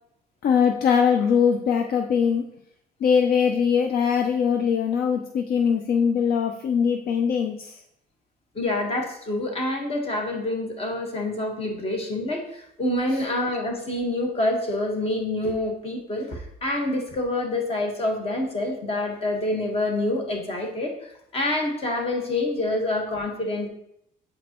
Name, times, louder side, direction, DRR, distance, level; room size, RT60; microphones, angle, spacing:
voice 1, 0.4-2.5 3.0-7.8, left 7 dB, 65° left, 5 dB, 0.6 m, -21 dB
voice 2, 8.5-20.9 21.3-23.7, left 1 dB, 35° left, 2 dB, 1.5 m, -27 dB
7.9 x 5.1 x 3.0 m, 0.76 s
cardioid pair, 110°, 17 cm